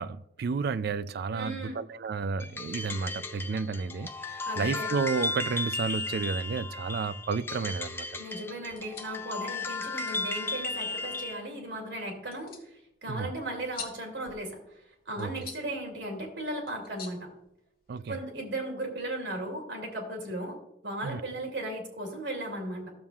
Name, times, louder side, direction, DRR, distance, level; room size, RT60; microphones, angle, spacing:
voice 1, 0.0-8.3 13.1-13.3 15.2-15.3 17.9-18.2 21.0-21.2, right 5 dB, 60° right, 0.4 m, -32 dB
voice 2, 1.3-1.8 4.5-4.9 8.2-12.5 13.0-14.6 15.1-17.3 18.1-20.6 20.8-22.9, right 1 dB, 80° right, 2.7 m, -36 dB
sound 1, 2.4-11.4, left 3 dB, 15° left, 0.4 m, -35 dB
sound 2, 8.6-18.1, left 6 dB, 55° left, 1.4 m, -50 dB
14.5 x 7.1 x 2.4 m
head